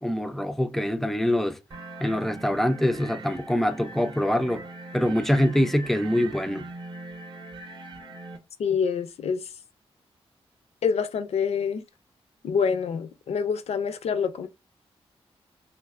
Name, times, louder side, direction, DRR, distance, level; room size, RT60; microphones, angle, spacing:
voice 1, 0.0-1.6 2.0-4.7 4.9-6.7, equal, 5° left, 0.3 m, -24 dB
sound 1, 1.7-8.4, right 2 dB, 45° right, 0.6 m, -41 dB
voice 2, 8.6-9.5 10.8-11.8 12.4-14.5, left 6 dB, 75° left, 0.4 m, -26 dB
3.3 x 2.6 x 2.4 m
wide cardioid pair, 115°, 11 cm